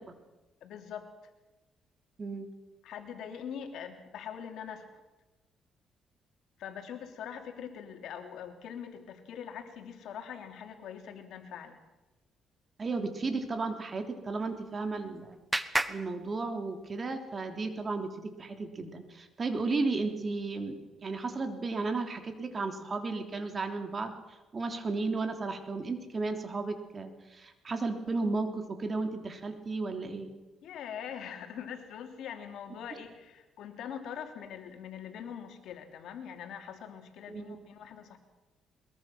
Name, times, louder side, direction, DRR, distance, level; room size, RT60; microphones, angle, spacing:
voice 1, 0.6-1.1 2.8-5.0 6.6-11.8 30.6-38.2, left 8 dB, 80° left, 5 dB, 3.1 m, -43 dB
voice 2, 12.8-15.4 15.9-20.8 21.0-24.1 24.5-30.3 37.3-37.6, right 3 dB, 35° right, 6 dB, 3.4 m, -34 dB
Clapping, 14.4-17.0, right 1 dB, 10° right, 1.3 m, -36 dB
22.0 x 22.0 x 6.2 m, 1.1 s
cardioid pair, 90°, 0 cm